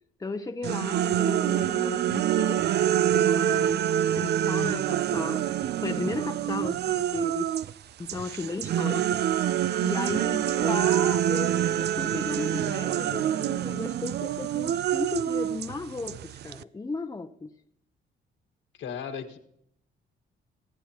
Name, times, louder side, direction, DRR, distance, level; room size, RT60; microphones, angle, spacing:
voice 1, 0.2-2.6 3.1-3.8 4.2-5.4 5.8-7.5 8.0-9.2 9.8-17.5, left 3 dB, 15° left, 0.8 m, -35 dB
sound 1, 0.6-7.7 8.1-16.6, right 11 dB, 55° right, 0.4 m, -26 dB
voice 2, 18.8-19.4, left 7 dB, 75° left, 1.6 m, -38 dB
26.5 x 9.0 x 2.9 m
cardioid pair, 90°, 20 cm